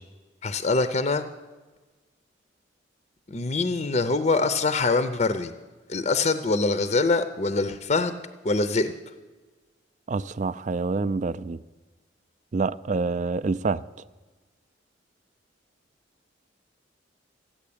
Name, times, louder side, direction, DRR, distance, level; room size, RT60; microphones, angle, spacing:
voice 1, 0.4-1.3 3.3-5.5 5.9-8.2 8.4-8.9, left 3 dB, 35° left, 0.6 m, -24 dB
voice 2, 10.1-11.6 12.5-13.8, right 4 dB, 40° right, 0.4 m, -27 dB
14.5 x 9.1 x 8.6 m
head